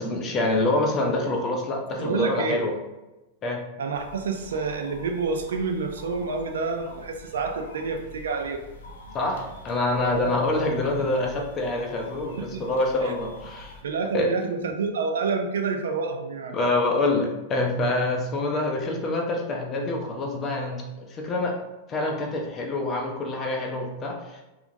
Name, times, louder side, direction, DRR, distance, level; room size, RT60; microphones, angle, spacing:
voice 1, 0.0-2.7 3.4-3.6 9.1-13.8 14.1-14.3 16.5-21.5 21.9-24.4, left 2 dB, 30° left, 1 dB, 0.6 m, -26 dB
voice 2, 2.0-2.6 3.8-8.6 10.1-10.4 11.0-11.1 12.4-12.6 13.0-13.1 13.8-16.6, right 4 dB, 90° right, 5 dB, 0.4 m, -28 dB
sound 1, 3.9-13.8, left 2 dB, 80° left, 0.5 m, -45 dB
2.8 x 2.4 x 2.6 m, 1.0 s
hypercardioid pair, 135°, 0 cm